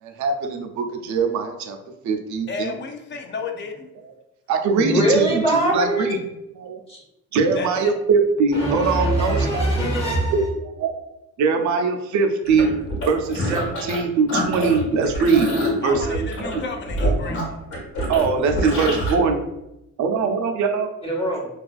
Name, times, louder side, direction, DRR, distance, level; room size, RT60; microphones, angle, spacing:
voice 1, 0.0-1.8 2.0-2.7 4.0-4.1 4.5-6.2 6.6-6.8 7.3-9.7 10.3-10.4 10.8-10.9 11.4-12.7 13.0-15.5 15.8-16.6 18.1-19.4 20.0-20.9, right 5 dB, 70° right, 5 dB, 0.5 m, -22 dB
voice 2, 2.5-3.9 7.5-7.9 15.8-17.6, left 4 dB, 40° left, 5 dB, 0.4 m, -32 dB
voice 3, 4.8-6.1 6.9-7.0 8.5-10.3 21.0-21.5, right 1 dB, 20° left, -2 dB, 0.9 m, -22 dB
sound 1, 12.5-14.0 14.3-19.1, equal, 80° left, 1.2 m, -26 dB
2.3 x 2.3 x 2.3 m, 0.89 s
cardioid pair, 90°, 30 cm